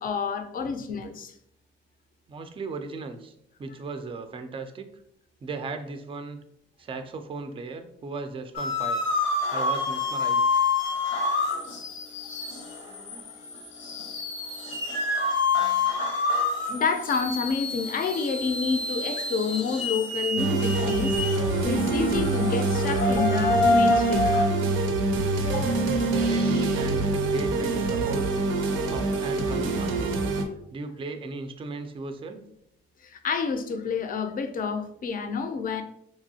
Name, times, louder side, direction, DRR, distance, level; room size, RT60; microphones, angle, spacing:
voice 1, 0.0-1.3 15.9-16.1 16.7-21.2 21.7-24.3 25.4-25.9 33.0-35.8, left 5 dB, 45° left, 7 dB, 0.4 m, -29 dB
voice 2, 2.3-5.0 5.4-6.4 6.8-9.1 9.5-10.4 12.9-13.3 26.1-28.3 28.9-30.2 30.7-32.4, right 3 dB, 25° right, 8 dB, 0.4 m, -37 dB
sound 1, 8.5-24.4, left 3 dB, 80° left, 0.8 m, -27 dB
sound 2, 20.4-30.5, right 3 dB, 85° right, 0.5 m, -25 dB
2.9 x 2.6 x 2.7 m, 0.74 s
cardioid pair, 90°, 20 cm